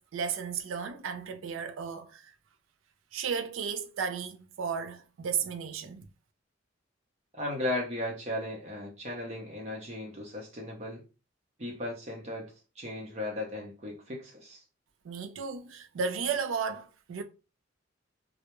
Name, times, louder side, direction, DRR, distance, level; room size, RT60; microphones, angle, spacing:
voice 1, 0.0-2.3 3.1-6.1 15.0-17.2, right 6 dB, 85° right, 0.4 m, -34 dB
voice 2, 7.3-11.0 11.6-14.6, left 1 dB, 35° right, 0.6 m, -36 dB
2.2 x 2.0 x 2.9 m
head